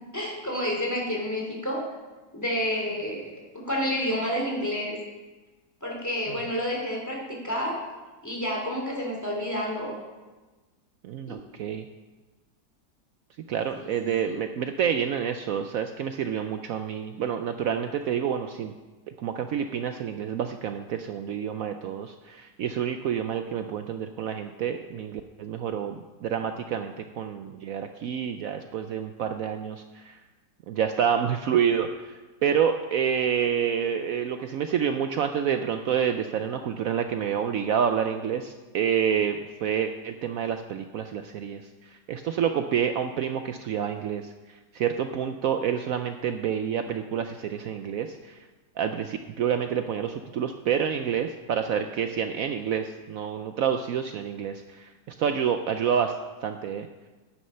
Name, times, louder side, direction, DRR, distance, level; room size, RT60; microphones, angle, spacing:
voice 1, 0.1-1.8 2.3-5.0 5.8-7.7 8.2-10.0 11.3-11.4 13.7-13.9 14.2-14.4, equal, 10° left, -2 dB, 2.6 m, -29 dB
voice 2, 11.0-11.9 13.5-18.7 19.2-30.2 30.7-48.4 48.8-56.1 56.4-56.9, right 8 dB, 75° right, 7 dB, 0.8 m, -28 dB
9.7 x 9.5 x 5.5 m, 1.2 s
omnidirectional pair, 2.0 m